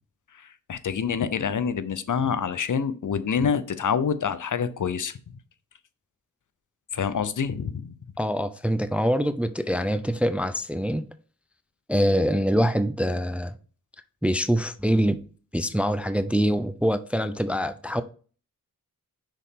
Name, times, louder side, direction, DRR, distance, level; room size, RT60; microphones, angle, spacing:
voice 1, 0.3-5.2 6.9-8.0, left 6 dB, 55° left, 0.7 m, -27 dB
voice 2, 8.2-11.1 11.9-13.6 14.2-15.2 15.5-18.0, equal, 5° right, 0.5 m, -24 dB
6.2 x 4.2 x 3.6 m
cardioid pair, 55°, 36 cm